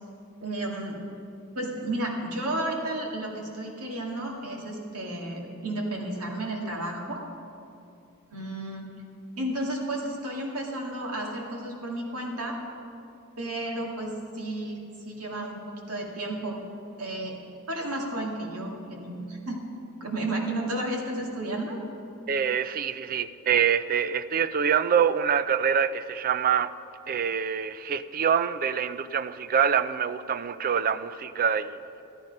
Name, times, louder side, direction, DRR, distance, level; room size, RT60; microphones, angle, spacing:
voice 1, 0.4-1.0 1.6-7.2 8.3-8.9 9.4-12.6 13.4-14.8 15.1-16.6 17.0-17.4 17.7-19.6 20.0-21.8, right 1 dB, 90° right, -1 dB, 2.1 m, -32 dB
voice 2, 22.3-26.7 27.1-32.0, right 7 dB, 40° right, 13 dB, 0.4 m, -25 dB
13.0 x 10.5 x 5.3 m, 2.7 s
head